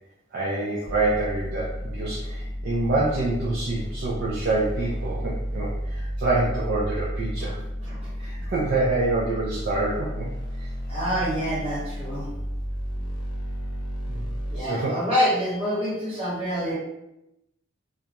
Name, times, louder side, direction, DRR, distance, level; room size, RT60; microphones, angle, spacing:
voice 1, 0.3-7.6 8.2-10.3 10.6-10.7 14.1-14.2 14.5-15.0, right 2 dB, 55° right, -5 dB, 0.4 m, -26 dB
sound 1, 0.8-14.6, equal, 25° left, 0.4 m, -32 dB
voice 2, 10.9-12.3 14.5-16.7, equal, 30° right, -9 dB, 1.2 m, -26 dB
2.4 x 2.1 x 2.8 m, 0.90 s
head